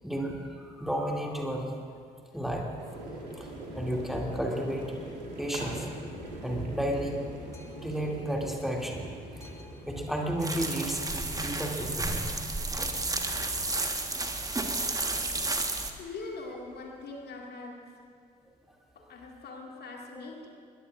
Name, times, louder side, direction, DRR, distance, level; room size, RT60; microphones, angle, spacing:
voice 1, 0.0-1.7 2.3-2.7 3.4-3.5 3.7-4.9 5.4-5.9 6.4-7.2 7.7-9.0 9.4-9.6 9.8-12.3, equal, ahead, -1 dB, 2.6 m, -32 dB
sound 1, 2.8-17.3, right 1 dB, 85° right, 1.9 m, -45 dB
Boat Water vehicle, 5.9-13.8, left 1 dB, 15° left, 1.8 m, -50 dB
sound 2, 10.4-15.9, right 2 dB, 15° right, 1.4 m, -32 dB
voice 2, 16.0-17.8 19.1-20.5, left 3 dB, 50° left, 0 dB, 2.1 m, -42 dB
21.0 x 20.5 x 2.5 m, 2.2 s
figure-of-eight pair, 40°, 21 cm